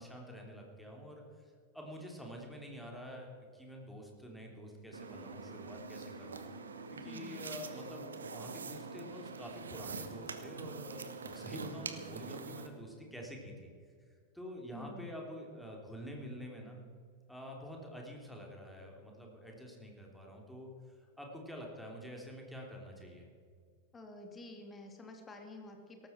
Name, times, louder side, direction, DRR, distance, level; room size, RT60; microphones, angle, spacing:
voice 1, 0.0-6.4 6.9-13.7 14.3-16.8 17.3-20.7 21.0-23.3, equal, ahead, 0 dB, 3.4 m, -47 dB
sound 1, 4.9-12.7, right 4 dB, 70° right, 1.1 m, -45 dB
voice 2, 7.0-7.4 14.7-15.1 23.9-26.1, left 2 dB, 15° left, 3 dB, 2.3 m, -49 dB
18.0 x 14.0 x 4.5 m, 2.1 s
figure-of-eight pair, 90°, 0 cm